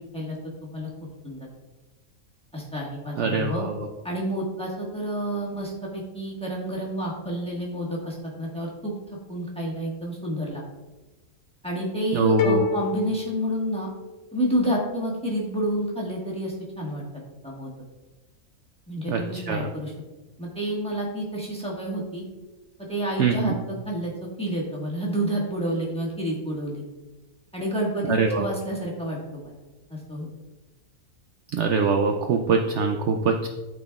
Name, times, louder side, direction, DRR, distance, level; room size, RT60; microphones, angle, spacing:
voice 1, 2.5-3.6 4.0-8.9 9.3-10.6 11.6-13.9 14.3-17.7 18.9-19.9 20.4-22.2 22.9-23.5 23.8-24.1 24.4-26.8 27.5-29.6 29.9-30.3, equal, 5° left, -4 dB, 1.3 m, -29 dB
voice 2, 3.2-3.9 12.1-12.7 19.1-19.6 23.2-23.5 28.1-28.4 31.5-33.5, right 4 dB, 65° right, 4 dB, 0.8 m, -23 dB
sound 1, 12.4-14.4, left 5 dB, 85° left, 1.1 m, -29 dB
12.0 x 4.1 x 2.4 m, 1.1 s
omnidirectional pair, 1.5 m